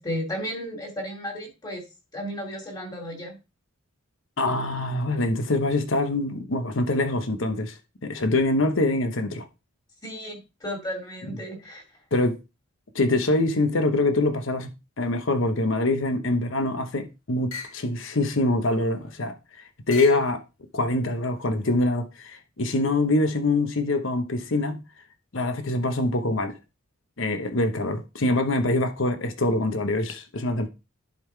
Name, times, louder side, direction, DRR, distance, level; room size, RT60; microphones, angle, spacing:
voice 1, 0.0-1.8 2.1-3.4 10.0-11.8, equal, 20° left, 2.5 m, -34 dB
voice 2, 4.4-7.8 8.0-9.5 12.1-12.4 12.9-14.7 15.0-19.3 19.9-20.4 20.7-24.8 25.3-26.5 27.2-30.7, left 2 dB, 65° left, 1.0 m, -24 dB
sound 1, 16.4-16.9 17.5-17.8 18.6-19.3 19.9-20.3 21.1-21.8, left 4 dB, 85° left, 2.5 m, -42 dB
11.0 x 3.7 x 4.5 m
head